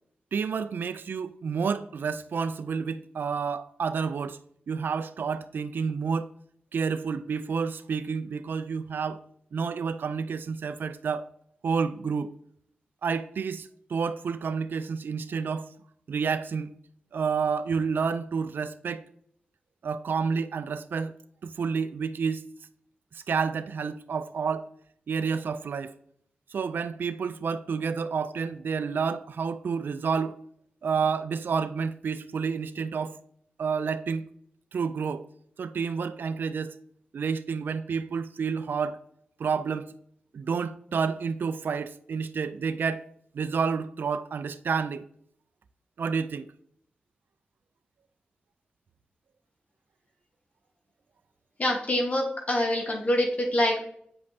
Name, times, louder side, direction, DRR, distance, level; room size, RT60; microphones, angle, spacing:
voice 1, 0.3-4.4 4.7-6.3 6.7-9.2 9.5-11.3 11.6-12.3 13.0-15.7 16.1-16.7 17.1-19.0 19.8-21.1 21.4-22.4 23.1-24.6 25.1-25.9 26.5-30.3 30.8-33.2 33.6-34.2 34.7-35.3 35.6-36.7 37.1-39.0 39.4-39.9 40.3-43.0 43.3-45.0 46.0-46.5, right 5 dB, 75° right, 0.3 m, -29 dB
voice 2, 51.6-53.8, left 1 dB, 45° left, 1.4 m, -25 dB
8.0 x 5.2 x 2.7 m
cardioid pair, 60°, 3 cm